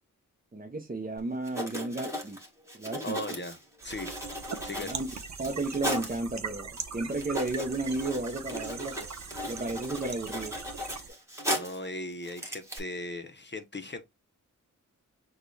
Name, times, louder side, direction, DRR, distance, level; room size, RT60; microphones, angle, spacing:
voice 1, 0.5-2.4 2.7-3.2 4.7-5.1 5.4-9.0 9.5-10.5, right 2 dB, 25° right, 0.7 m, -33 dB
Writing, 1.4-6.2 6.8-6.9 7.1-11.9 12.2-12.8, equal, 10° right, 1.5 m, -37 dB
voice 2, 3.0-3.6 3.8-4.1 4.6-4.9 11.5-14.1, left 1 dB, 35° left, 0.7 m, -38 dB
sound 1, 3.8-11.1, right 5 dB, 55° right, 0.7 m, -41 dB
6.4 x 2.3 x 3.2 m
wide cardioid pair, 115°, 33 cm